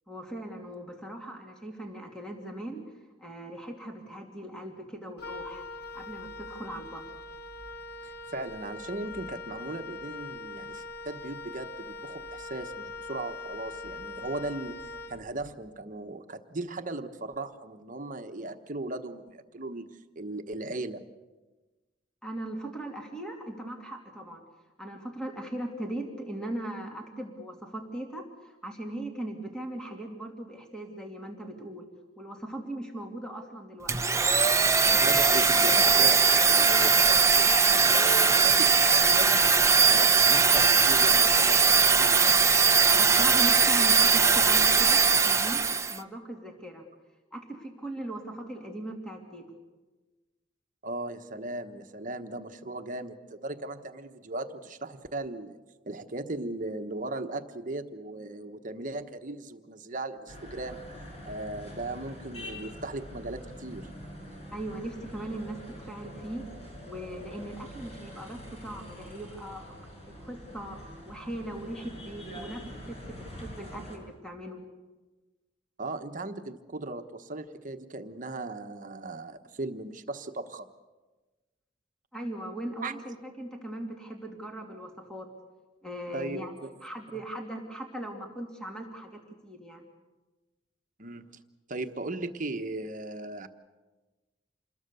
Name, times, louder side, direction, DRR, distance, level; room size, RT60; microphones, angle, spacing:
voice 1, 0.1-2.9 3.2-5.6 5.9-7.1 22.2-24.4 24.8-31.9 32.2-33.9 42.9-46.9 47.3-49.4 64.5-66.5 66.9-69.7 70.2-74.6 82.1-85.3 85.8-86.5 86.8-89.8, right 1 dB, 5° left, 1 dB, 2.6 m, -39 dB
Wind instrument woodwind instrument, 5.2-15.6, left 3 dB, 60° left, 1.1 m, -42 dB
voice 2, 8.0-14.8 15.1-19.9 20.1-21.0 34.9-39.4 39.7-42.4 50.8-55.6 55.9-60.8 61.3-63.9 75.8-80.7 82.8-82.9 86.1-86.7 91.0-91.3 91.7-93.5, right 2 dB, 45° right, 7 dB, 1.2 m, -37 dB
Domestic sounds home sounds, 33.9-46.0, right 5 dB, 15° right, 0.8 m, -20 dB
sound 1, 60.3-74.0, equal, 35° left, 6.1 m, -45 dB
27.5 x 21.0 x 6.9 m, 1.2 s
head